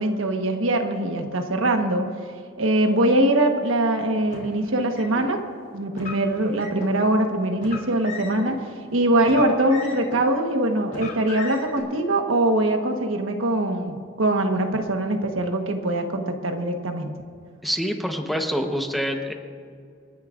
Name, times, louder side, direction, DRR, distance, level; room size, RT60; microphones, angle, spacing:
voice 1, 0.0-2.1 2.6-5.4 5.7-8.6 8.9-17.1, right 1 dB, 80° right, 4 dB, 1.3 m, -22 dB
Car, 4.3-5.2 5.9-6.9 7.6-8.5 9.2-10.3 10.9-11.8, left 3 dB, 40° left, 3.7 m, -37 dB
voice 2, 17.6-19.3, equal, ahead, 3 dB, 1.0 m, -26 dB
28.5 x 10.5 x 2.5 m, 2.3 s
head